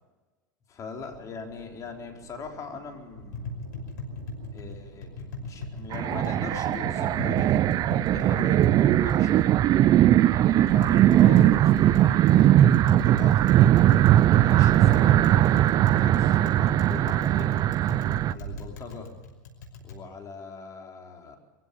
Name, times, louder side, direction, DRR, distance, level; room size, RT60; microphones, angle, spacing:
voice 1, 0.7-3.6 4.5-7.6 7.9-9.4 10.3-13.7 14.2-17.5 18.2-19.1 19.8-21.4, left 5 dB, 30° left, 2 dB, 4.3 m, -41 dB
sound 1, 0.9-18.6, right 6 dB, 75° right, 4.3 m, -47 dB
Tap, 3.2-20.0, left 3 dB, 75° left, 5.6 m, -41 dB
sound 2, 5.9-18.3, right 12 dB, 35° right, 0.6 m, -20 dB
23.5 x 16.0 x 7.1 m, 1.2 s
hypercardioid pair, 110°, 10 cm